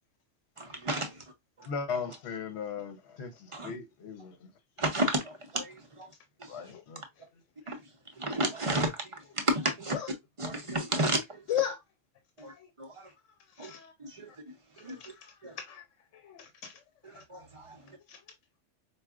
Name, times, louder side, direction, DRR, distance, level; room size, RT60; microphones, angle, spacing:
voice 1, 0.6-1.2 1.6-1.7 3.5-3.7 4.8-6.1 6.4-6.5 7.7-7.8 8.2-9.9 10.4-11.4 12.4-13.1 13.6-13.7 14.0-15.0 15.4-15.5 17.1-18.0, right 1 dB, 35° right, 0.6 m, -32 dB
voice 2, 1.7-4.5 6.5-7.0, left 5 dB, 65° left, 1.0 m, -38 dB
voice 3, 12.4-12.7 13.5-13.9 14.3-14.4 14.8-15.8 16.1-16.8 17.1-17.2 18.1-18.2, left 11 dB, 90° left, 1.0 m, -37 dB
4.6 x 2.4 x 2.3 m
omnidirectional pair, 1.2 m